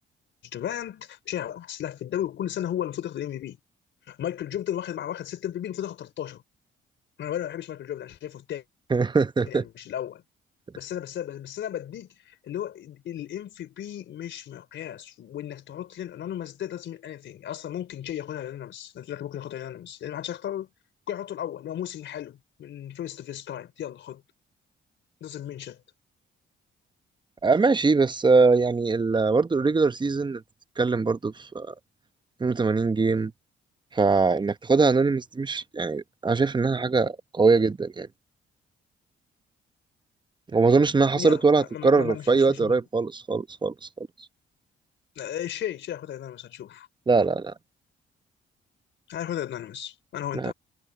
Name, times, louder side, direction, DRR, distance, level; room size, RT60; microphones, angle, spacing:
voice 1, 0.5-3.6 4.1-6.4 7.2-8.6 9.5-10.2 10.7-20.7 21.1-24.2 25.2-25.8 41.2-42.8 45.2-46.9 49.1-50.5, left 11 dB, 70° left, 3.8 m, -35 dB
voice 2, 8.9-9.6 27.4-30.4 30.8-31.7 32.4-33.3 33.9-38.1 40.5-43.7 47.1-47.5 50.3-50.5, right 4 dB, 25° right, 0.9 m, -22 dB
cardioid pair, 90°, 20 cm